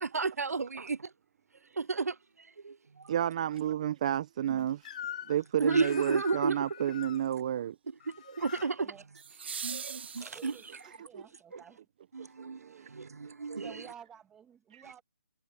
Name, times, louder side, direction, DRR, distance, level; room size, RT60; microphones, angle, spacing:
voice 1, 0.0-1.1 1.8-2.2 2.6-3.1 5.6-6.6 8.1-8.9 9.6-10.6 11.1-11.3 11.5-11.6 12.1-12.6 12.9-13.9, right 4 dB, 85° right, 0.7 m, -32 dB
voice 2, 3.1-4.9 5.3-7.8 10.8-11.2 12.2-12.9 13.2-13.3 14.7-14.8, right 10 dB, 25° right, 0.7 m, -32 dB
sound 1, 3.5-3.6 9.1-10.9 13.1-13.2, right 6 dB, 45° right, 1.1 m, -42 dB
Crying sobbing / Screech, 4.8-5.4 5.7-7.2 8.0-8.7, left 10 dB, 30° left, 4.3 m, -43 dB
voice 3, 10.2-11.8 13.6-15.0, right 8 dB, 5° right, 2.0 m, -52 dB
hypercardioid pair, 165°, 8 cm